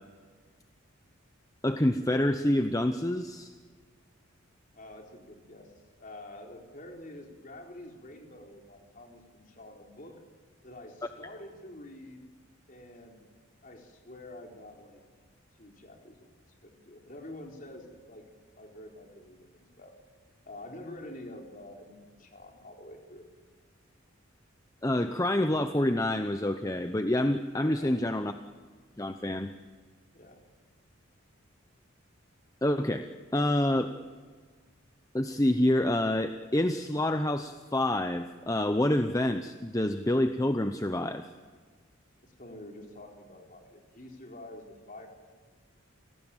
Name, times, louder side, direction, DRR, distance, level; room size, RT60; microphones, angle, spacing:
voice 1, 1.6-3.5 24.8-28.3 29.0-29.5 32.6-33.1 33.3-33.9 35.1-41.2, left 1 dB, 15° left, 8 dB, 0.8 m, -27 dB
voice 2, 4.7-5.7 6.0-10.2 10.6-12.3 12.7-13.3 13.6-15.0 15.6-16.2 16.6-18.2 18.5-19.9 20.5-23.3 27.5-28.0 30.1-30.4 42.2-45.1, left 1 dB, 40° left, 2 dB, 4.2 m, -47 dB
29.0 x 18.5 x 9.0 m, 1.5 s
head